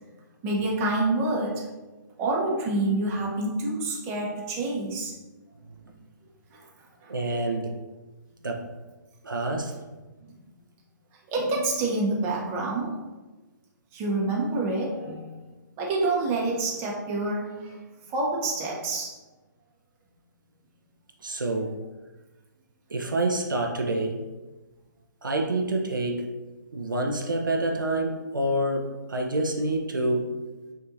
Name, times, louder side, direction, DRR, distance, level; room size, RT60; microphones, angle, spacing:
voice 1, 0.4-1.7 2.2-5.1 6.5-6.7 7.0-7.1 11.3-12.9 13.9-15.3 15.8-17.8 18.1-19.1, right 2 dB, 25° right, -3 dB, 0.9 m, -27 dB
voice 2, 7.1-7.8 8.4-8.7 9.2-9.7 21.2-21.7 22.9-24.2 25.2-26.3 26.7-30.4, right 1 dB, 85° right, 1 dB, 0.6 m, -27 dB
5.7 x 2.7 x 2.6 m, 1.2 s
figure-of-eight pair, 130°, 11 cm